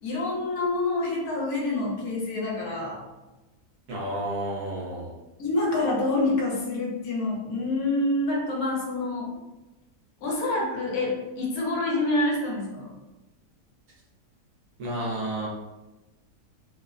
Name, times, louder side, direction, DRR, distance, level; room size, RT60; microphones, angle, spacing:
voice 1, 0.0-3.0 5.4-9.3 10.2-12.9, left 2 dB, 70° left, -2 dB, 1.1 m, -27 dB
voice 2, 3.9-5.1 14.8-15.5, right 1 dB, 75° right, -4 dB, 1.2 m, -31 dB
3.1 x 2.1 x 2.4 m, 1.1 s
omnidirectional pair, 1.7 m